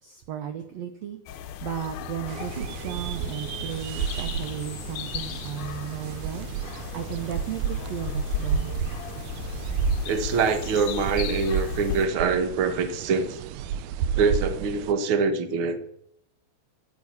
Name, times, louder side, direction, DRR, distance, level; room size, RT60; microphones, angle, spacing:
voice 1, 0.0-8.7, right 10 dB, 75° right, 1.5 m, -35 dB
sound 1, 1.3-12.1, left 10 dB, 75° left, 2.1 m, -36 dB
sound 2, 2.3-14.9, right 8 dB, 90° right, 1.6 m, -32 dB
voice 2, 10.0-13.4 14.2-15.8, right 5 dB, 55° right, 1.5 m, -24 dB
12.5 x 9.9 x 8.6 m
omnidirectional pair, 4.1 m